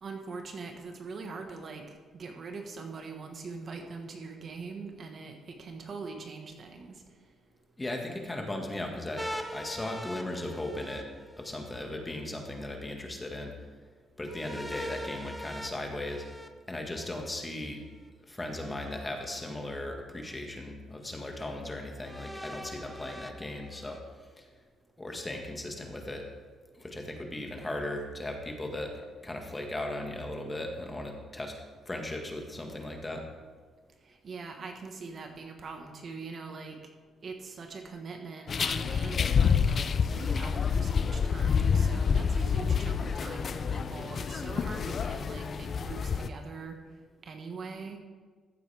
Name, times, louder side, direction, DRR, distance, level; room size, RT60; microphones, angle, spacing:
voice 1, 0.0-1.9 2.1-7.0 34.1-36.8 37.2-46.8 47.2-48.0, right 4 dB, 50° right, 4 dB, 1.3 m, -42 dB
voice 2, 7.8-11.0 11.4-13.5 14.2-16.2 16.7-17.8 18.3-24.0 24.4-24.5 25.0-26.2 26.7-28.9 29.2-31.5 31.8-33.2, left 1 dB, 20° left, 2 dB, 1.7 m, -37 dB
sound 1, 9.2-11.8 14.3-17.3 18.6-19.5 20.3-20.4 22.0-24.0, equal, ahead, 0.7 m, -43 dB
sound 2, 38.5-46.3, left 6 dB, 45° left, 0.4 m, -28 dB
14.5 x 7.9 x 3.5 m, 1.5 s
cardioid pair, 90°, 0 cm